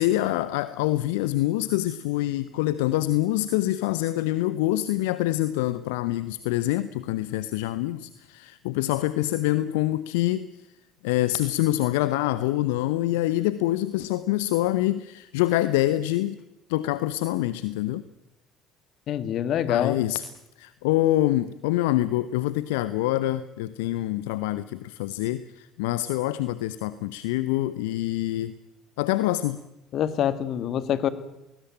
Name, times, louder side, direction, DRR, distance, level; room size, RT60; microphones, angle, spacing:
voice 1, 0.0-10.5 11.0-16.4 16.7-18.1 19.7-20.2 20.6-28.5 29.0-29.6, left 15 dB, 70° left, 15 dB, 0.7 m, -25 dB
voice 2, 19.1-20.0 29.9-31.1, left 10 dB, 50° left, 13 dB, 1.9 m, -25 dB
20.5 x 20.0 x 9.0 m, 0.92 s
figure-of-eight pair, 60°, 0 cm